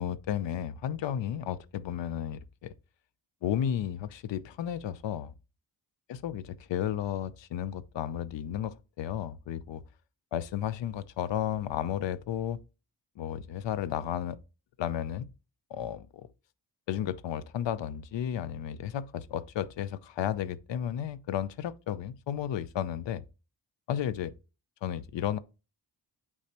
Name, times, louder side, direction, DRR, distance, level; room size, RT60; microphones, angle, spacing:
voice 1, 0.0-2.7 3.4-5.3 6.1-9.8 10.3-12.6 13.2-14.4 14.8-15.3 15.7-16.3 16.9-23.2 23.9-24.3 24.8-25.4, left 10 dB, 75° left, 0.7 m, -33 dB
8.5 x 4.8 x 2.9 m
cardioid pair, 85°, 45 cm